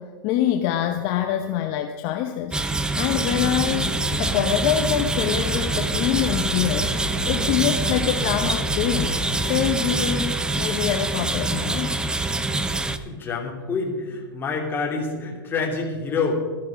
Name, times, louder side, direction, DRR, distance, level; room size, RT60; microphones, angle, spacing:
voice 1, 0.0-12.0, left 10 dB, 45° left, 5 dB, 0.9 m, -25 dB
sound 1, 2.5-13.0, right 2 dB, 5° right, 0.6 m, -25 dB
sound 2, 3.3-9.7, left 6 dB, 85° left, 2.1 m, -35 dB
voice 2, 13.0-16.4, left 4 dB, 20° left, -1 dB, 2.9 m, -27 dB
13.5 x 12.0 x 5.2 m, 1.4 s
supercardioid pair, 140°, 12 cm